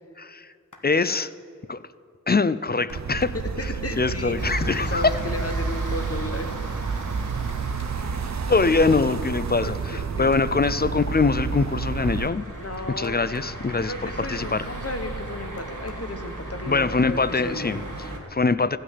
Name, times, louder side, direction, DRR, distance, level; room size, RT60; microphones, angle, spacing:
voice 1, 0.2-0.5 0.8-1.3 1.7-1.8 2.3-3.3 3.6-3.7 4.0-5.1 8.5-12.4 13.0-14.7 16.7-18.8, left 4 dB, 30° left, 15 dB, 0.4 m, -23 dB
sound 1, 0.6-1.0 2.9-3.6 5.2-5.8 7.5-8.0 10.3-10.9 13.0-13.7 15.6-16.2 17.3-17.4 17.8-18.0, left 3 dB, 70° left, 1.5 m, -51 dB
sound 2, 2.9-12.3, right 6 dB, 60° right, 0.6 m, -30 dB
voice 2, 3.6-4.4 4.8-6.5 9.9-10.3 12.6-13.3 13.8-17.7, left 1 dB, 45° left, 6 dB, 1.4 m, -34 dB
sound 3, 4.4-18.2, right 1 dB, 90° right, 2.3 m, -35 dB
15.5 x 6.2 x 9.5 m, 2.3 s
wide cardioid pair, 55°, 32 cm